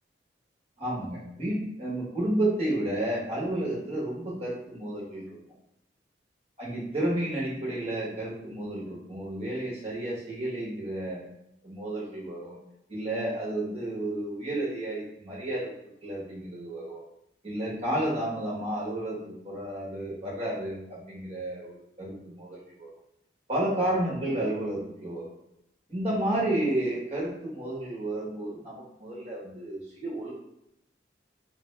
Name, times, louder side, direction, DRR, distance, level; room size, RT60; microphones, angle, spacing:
voice 1, 0.8-5.4 6.6-11.2 11.6-12.6 12.9-15.7 16.0-17.0 17.4-22.9 23.5-25.3 25.9-30.4, right 1 dB, 35° right, -5 dB, 1.2 m, -31 dB
3.1 x 2.5 x 3.2 m, 0.79 s
head